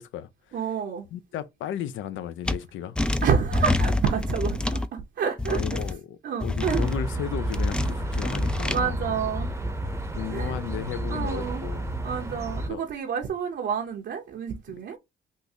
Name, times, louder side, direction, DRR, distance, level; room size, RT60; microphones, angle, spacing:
voice 1, 0.0-0.6 1.1-3.0 5.5-8.9 10.1-11.9 12.7-12.8, left 10 dB, 75° left, 0.5 m, -35 dB
voice 2, 0.5-1.0 3.2-5.6 6.2-6.9 8.7-9.5 10.3-10.5 11.1-11.6 12.0-15.0, right 7 dB, 65° right, 0.8 m, -28 dB
sound 1, 2.5-2.6 3.0-4.9 5.4-5.9 6.4-7.0 7.5-8.8, left 2 dB, 5° left, 0.3 m, -26 dB
sound 2, 6.6-12.7, right 1 dB, 15° right, 0.7 m, -31 dB
3.7 x 2.5 x 2.7 m
cardioid pair, 90°, 20 cm